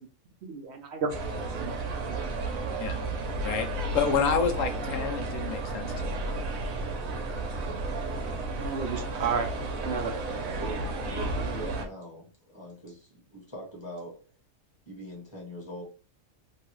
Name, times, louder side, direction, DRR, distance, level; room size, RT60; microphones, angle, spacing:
voice 1, 0.4-1.1 1.6-1.7 2.1-2.2 8.6-9.5 9.8-10.2, right 5 dB, 65° right, 0.8 m, -31 dB
sound 1, 1.1-11.9, right 2 dB, 85° right, 1.2 m, -32 dB
voice 2, 3.9-6.2, left 6 dB, 75° left, 1.0 m, -28 dB
voice 3, 10.6-14.3 14.9-15.8, right 1 dB, 20° left, 1.3 m, -42 dB
3.1 x 2.3 x 3.0 m
omnidirectional pair, 1.4 m